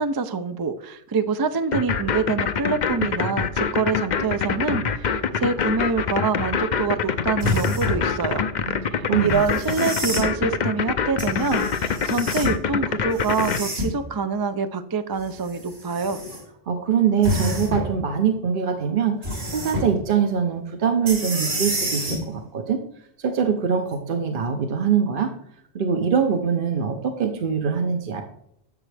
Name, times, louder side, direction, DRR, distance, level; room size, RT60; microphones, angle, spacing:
voice 1, 0.0-8.4 8.9-16.2, right 4 dB, 35° right, 10 dB, 0.4 m, -26 dB
sound 1, 1.7-13.6, left 6 dB, 55° left, 0.7 m, -24 dB
sound 2, 7.4-8.1 9.4-10.3 11.2-12.6 13.1-14.0 15.2-16.4 17.2-17.9 19.2-19.9 21.1-22.2 23.9-24.0, equal, 75° right, 3.0 m, -28 dB
voice 2, 8.7-9.5 16.7-22.8 23.2-25.3 25.7-28.2, right 7 dB, 55° right, 5 dB, 0.9 m, -23 dB
11.0 x 7.2 x 3.3 m, 0.72 s
omnidirectional pair, 1.1 m